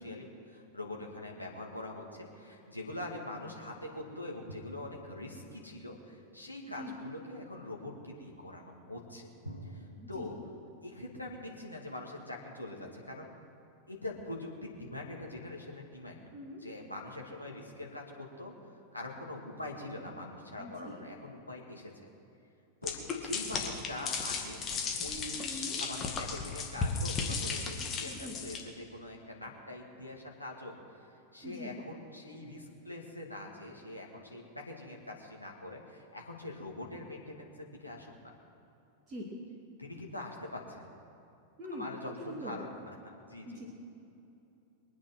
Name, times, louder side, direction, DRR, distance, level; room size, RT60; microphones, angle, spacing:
voice 1, 0.0-9.3 9.6-10.3 10.8-13.3 13.9-16.2 16.6-18.5 18.9-21.9 22.8-24.6 25.0-30.7 31.3-38.3 39.8-40.9 41.7-43.0 43.3-43.6, left 1 dB, 85° left, -1 dB, 2.3 m, -43 dB
sound 1, 4.5-6.1 9.4-10.0, right 1 dB, 90° right, 1.3 m, -48 dB
voice 2, 20.6-20.9 25.4-25.8 28.0-28.4 31.4-31.8 39.1-39.3 41.6-41.9 42.3-42.6 43.4-43.7, left 1 dB, 25° right, -3 dB, 2.5 m, -43 dB
sound 2, 22.8-28.6, left 4 dB, 25° left, 2.1 m, -35 dB
23.5 x 8.7 x 6.2 m, 2.7 s
figure-of-eight pair, 90°, 0 cm